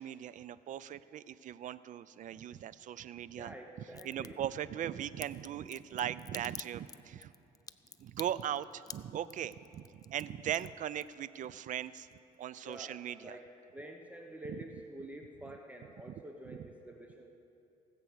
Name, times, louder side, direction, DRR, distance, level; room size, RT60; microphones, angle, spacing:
voice 1, 0.0-3.5 4.0-7.3 8.0-12.1 12.4-13.4 14.5-14.6 16.5-16.6, right 10 dB, 50° right, 17 dB, 0.4 m, -39 dB
voice 2, 3.4-4.4 12.6-13.5 13.7-17.3, right 1 dB, 10° right, 2 dB, 0.9 m, -48 dB
Crack, 3.9-4.3 5.2-11.5 11.8-12.4 12.7-12.8, left 6 dB, 20° left, 0.3 m, -48 dB
18.0 x 8.2 x 6.2 m, 2.8 s
cardioid pair, 110°, 17 cm